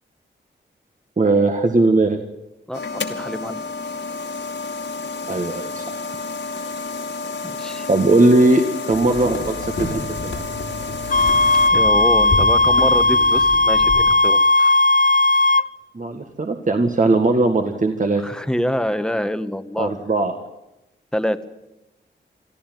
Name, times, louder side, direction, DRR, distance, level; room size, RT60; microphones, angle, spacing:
voice 1, 1.2-2.2 5.3-6.0 7.9-10.4 15.9-18.2 19.8-20.4, right 2 dB, 40° right, 5 dB, 1.9 m, -19 dB
sound 1, 2.7-11.7, left 3 dB, 75° left, 2.6 m, -30 dB
voice 2, 2.7-3.6 7.4-7.9 11.7-14.8 18.2-19.9 21.1-21.4, equal, 5° left, 10 dB, 1.4 m, -26 dB
sound 2, 8.9-14.2, left 3 dB, 90° left, 3.6 m, -31 dB
sound 3, 11.1-15.7, left 2 dB, 45° left, 0.7 m, -16 dB
24.5 x 14.0 x 9.3 m, 0.93 s
wide cardioid pair, 95°, 19 cm